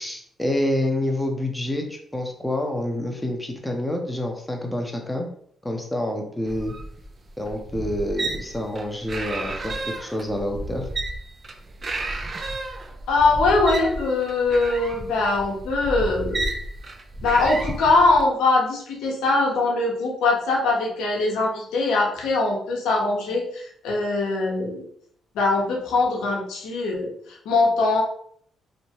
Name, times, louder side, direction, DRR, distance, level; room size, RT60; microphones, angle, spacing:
voice 1, 0.0-5.3 5.6-6.7 7.4-10.9, left 1 dB, 10° left, 1 dB, 0.6 m, -27 dB
sound 1, 6.5-18.3, right 2 dB, 40° right, 0.3 m, -32 dB
voice 2, 13.1-16.4 17.2-24.8 25.3-27.1 27.5-28.0, left 3 dB, 90° left, -1 dB, 0.6 m, -22 dB
2.8 x 2.1 x 2.8 m, 0.63 s
cardioid pair, 70°, 0 cm